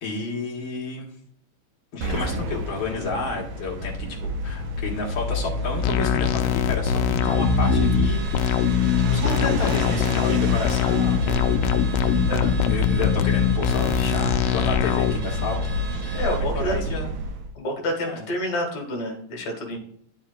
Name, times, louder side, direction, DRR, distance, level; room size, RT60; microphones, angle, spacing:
voice 1, 0.0-1.1 1.9-8.8 9.1-11.5 12.6-16.3 16.5-17.1 18.0-18.3 19.7-19.8, left 3 dB, 50° left, -1 dB, 2.1 m, -31 dB
sound 1, 2.0-17.5, equal, 85° right, 2.2 m, -27 dB
sound 2, 5.8-15.1, left 11 dB, 85° left, 1.4 m, -22 dB
Car / Alarm, 7.2-16.5, right 3 dB, 40° right, 2.3 m, -41 dB
voice 2, 16.2-16.7 17.6-19.8, left 1 dB, 65° left, 2 dB, 2.9 m, -28 dB
10.0 x 7.3 x 2.3 m, 0.64 s
omnidirectional pair, 3.4 m